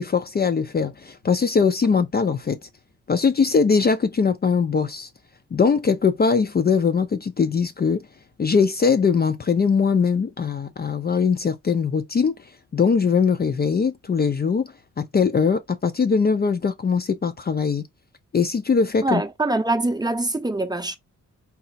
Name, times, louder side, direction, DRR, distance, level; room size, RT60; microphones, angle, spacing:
voice 1, 0.0-2.6 3.1-5.1 5.5-8.1 8.4-12.3 12.7-17.9 18.3-19.2, left 5 dB, 35° left, 0.4 m, -21 dB
voice 2, 19.0-21.0, right 2 dB, 15° right, 0.6 m, -24 dB
4.1 x 2.1 x 4.1 m
cardioid pair, 75°, 30 cm